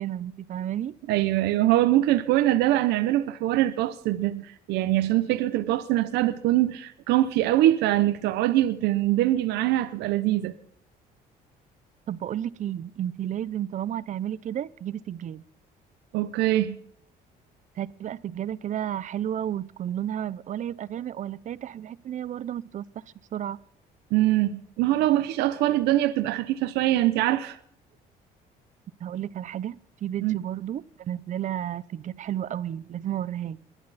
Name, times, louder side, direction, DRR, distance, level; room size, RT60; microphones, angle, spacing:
voice 1, 0.0-0.9 12.1-15.4 17.8-22.8 23.3-23.6 29.0-33.6, right 10 dB, 45° right, 0.7 m, -32 dB
voice 2, 1.1-10.5 16.1-16.8 24.1-27.6 30.2-30.4, right 14 dB, 90° right, 0.8 m, -23 dB
21.5 x 11.0 x 4.2 m
cardioid pair, 110°, 17 cm